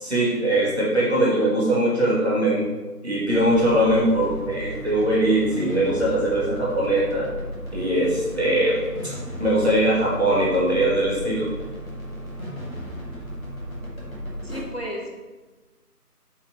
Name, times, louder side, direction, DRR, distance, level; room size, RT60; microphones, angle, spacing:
voice 1, 0.0-2.6 3.0-7.3 7.7-8.8 9.0-9.1 9.4-11.5, right 1 dB, 40° right, -6 dB, 2.5 m, -21 dB
sound 1, 3.3-14.6, equal, 55° left, 2.6 m, -35 dB
voice 2, 14.4-15.2, equal, 40° left, 0 dB, 1.0 m, -33 dB
7.1 x 5.5 x 4.5 m, 1.3 s
figure-of-eight pair, 175°, 48 cm